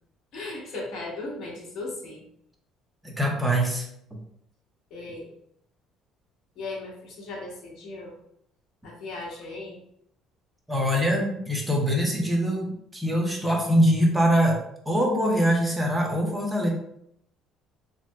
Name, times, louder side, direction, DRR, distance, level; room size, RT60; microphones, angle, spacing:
voice 1, 0.3-2.2 4.9-5.3 6.6-8.2 8.8-9.8, left 2 dB, 55° left, -2 dB, 0.9 m, -37 dB
voice 2, 3.0-3.9 10.7-12.7 12.9-14.6 14.9-16.7, equal, 5° right, -1 dB, 0.6 m, -23 dB
3.2 x 2.6 x 2.2 m, 0.72 s
cardioid pair, 140°, 0 cm